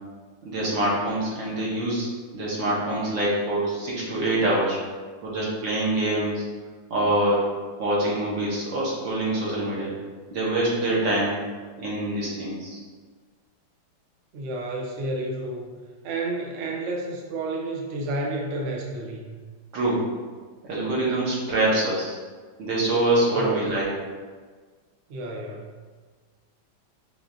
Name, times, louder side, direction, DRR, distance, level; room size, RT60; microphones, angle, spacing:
voice 1, 0.4-4.8 5.2-6.5 6.9-7.4 7.8-9.9 10.3-11.4 11.8-12.8 19.7-20.0 20.6-22.2 22.6-23.9, right 1 dB, 65° right, -6 dB, 1.9 m, -25 dB
voice 2, 14.3-15.8 16.0-19.4 23.4-23.7 25.1-25.7, right 2 dB, 80° right, 0 dB, 0.6 m, -31 dB
5.7 x 3.6 x 2.5 m, 1.5 s
omnidirectional pair, 2.2 m